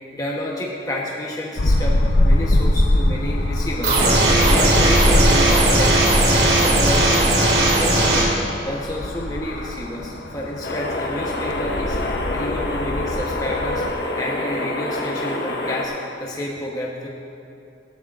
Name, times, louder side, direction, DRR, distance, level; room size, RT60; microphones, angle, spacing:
voice 1, 0.1-2.0 2.2-5.9 6.2-8.3 8.6-13.8 14.2-15.9 16.2-17.1, left 1 dB, 20° left, -3 dB, 0.9 m, -30 dB
sound 1, 1.6-13.9, left 1 dB, 85° left, 0.7 m, -23 dB
sound 2, 3.8-8.2, right 1 dB, 65° right, 2.5 m, -17 dB
sound 3, 10.6-15.8, left 1 dB, 65° left, 1.2 m, -27 dB
18.5 x 13.0 x 2.5 m, 2.6 s
head